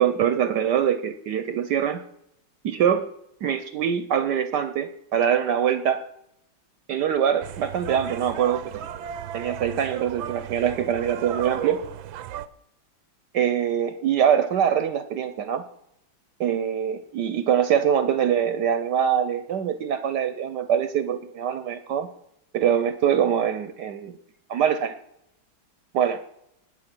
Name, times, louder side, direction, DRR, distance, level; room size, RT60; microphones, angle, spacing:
voice 1, 0.0-2.0 2.6-3.1 3.4-6.0 6.9-8.8 9.3-11.8 13.3-15.6 16.4-22.1 22.5-24.2 24.5-24.9 25.9-26.2, right 9 dB, 65° right, 11 dB, 1.2 m, -23 dB
sound 1, 7.4-12.5, right 10 dB, 90° right, 1.5 m, -35 dB
19.5 x 6.7 x 6.0 m, 0.79 s
omnidirectional pair, 2.1 m